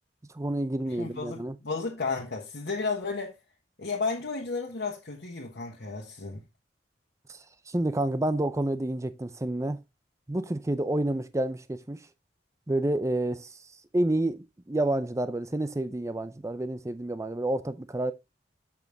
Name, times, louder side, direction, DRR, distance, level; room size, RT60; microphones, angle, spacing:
voice 1, 0.3-1.6 7.3-7.4 7.7-9.8 10.3-12.0 12.7-13.6 13.9-18.1, right 1 dB, 15° right, 0.5 m, -29 dB
voice 2, 1.0-3.3 3.8-6.4, left 4 dB, 65° left, 1.5 m, -33 dB
6.9 x 6.1 x 3.5 m
head